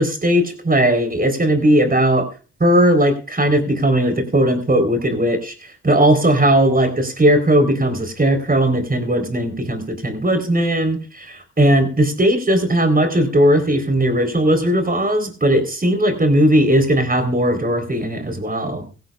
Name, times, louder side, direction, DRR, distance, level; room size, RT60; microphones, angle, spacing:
voice 1, 0.0-2.3 2.6-5.5 5.8-18.8, right 1 dB, 25° right, 8 dB, 3.8 m, -17 dB
18.0 x 15.5 x 2.4 m, 0.36 s
hypercardioid pair, 45°, 36 cm